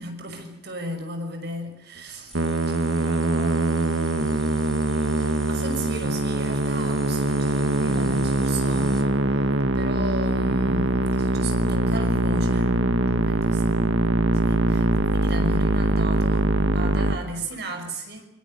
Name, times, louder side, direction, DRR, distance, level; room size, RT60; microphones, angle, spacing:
voice 1, 0.0-2.3 5.1-9.5 9.7-12.8 13.2-14.1 14.4-18.3, right 1 dB, 55° right, 5.9 m, -35 dB
sound 1, 2.3-9.0, left 1 dB, 5° left, 3.1 m, -43 dB
voice 2, 2.3-4.5 17.2-18.0, right 1 dB, 30° right, 3.9 m, -48 dB
Musical instrument, 2.3-17.2, right 2 dB, 80° right, 1.7 m, -22 dB
26.5 x 25.0 x 6.7 m
head